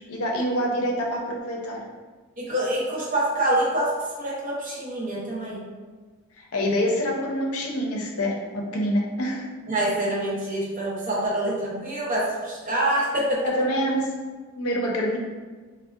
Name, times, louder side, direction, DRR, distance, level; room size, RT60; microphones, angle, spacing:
voice 1, 0.1-1.8 6.4-9.5 13.4-14.1 14.6-15.2, equal, 75° left, -1 dB, 0.5 m, -26 dB
voice 2, 2.4-5.7 9.7-13.6, right 1 dB, 40° right, -5 dB, 0.7 m, -26 dB
3.5 x 2.1 x 2.3 m, 1.4 s
head